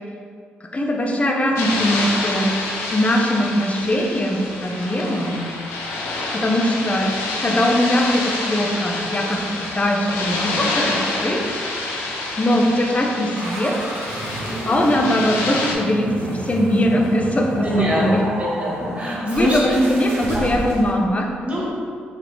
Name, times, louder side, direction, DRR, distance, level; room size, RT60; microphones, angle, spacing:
voice 1, 0.7-2.5 2.9-5.4 6.4-7.1 7.4-9.4 9.8-11.6 12.4-13.9 14.7-18.2 19.2-21.3, left 1 dB, 30° left, 1 dB, 0.7 m, -20 dB
sound 1, 1.5-15.7, left 2 dB, 80° left, 0.5 m, -27 dB
sound 2, 13.4-20.9, right 1 dB, 70° right, 0.9 m, -31 dB
voice 2, 17.6-18.1 18.4-19.6 21.4-21.8, equal, 30° right, -6 dB, 1.4 m, -23 dB
4.1 x 3.1 x 3.0 m, 2.2 s
hypercardioid pair, 45°, 5 cm